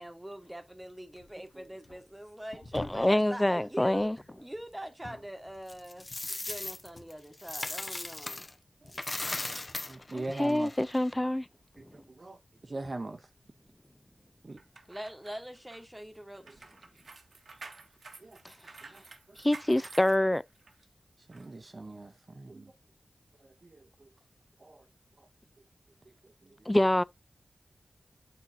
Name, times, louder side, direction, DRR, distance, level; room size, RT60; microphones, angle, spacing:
voice 1, 0.0-4.1 4.4-6.1 6.4-8.4 14.9-16.6, equal, 10° right, 1.3 m, -43 dB
sound 1, 0.7-0.9 1.2-3.2 3.8-7.2 7.5-11.3 11.6-13.9 14.3-15.1 15.8-16.0, left 2 dB, 60° left, 1.2 m, -52 dB
voice 2, 2.7-4.2 10.1-11.5 18.4-18.5 19.4-20.4 26.7-27.0, left 1 dB, 15° left, 0.4 m, -26 dB
Coin (dropping), 5.7-8.5 8.9-11.1, left 2 dB, 40° left, 0.9 m, -38 dB
voice 3, 9.9-10.7 11.8-12.4 12.7-13.2 14.4-14.6 18.2-18.4 18.9-19.0 21.3-22.7 23.6-23.9 24.6-24.8, right 2 dB, 50° right, 0.7 m, -41 dB
sound 2, 14.6-20.8 21.3-21.5, right 3 dB, 85° right, 1.2 m, -50 dB
8.2 x 4.4 x 2.6 m
cardioid pair, 55°, 0 cm